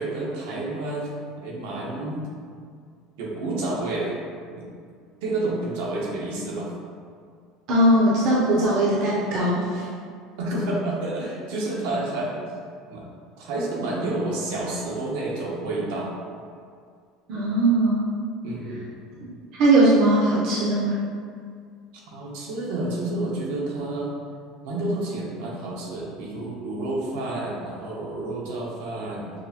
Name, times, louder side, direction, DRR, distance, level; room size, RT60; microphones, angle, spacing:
voice 1, 0.0-2.2 3.2-4.1 4.6-4.7 5.2-6.7 10.4-12.5 12.9-13.1 13.4-16.1 18.4-18.8 22.1-24.1 24.6-29.3, right 2 dB, 80° right, -3 dB, 0.9 m, -29 dB
voice 2, 7.7-9.7 17.3-18.1 19.6-21.0, right 1 dB, 45° right, -7 dB, 0.6 m, -19 dB
6.2 x 2.1 x 2.8 m, 2.1 s
cardioid pair, 180°, 0 cm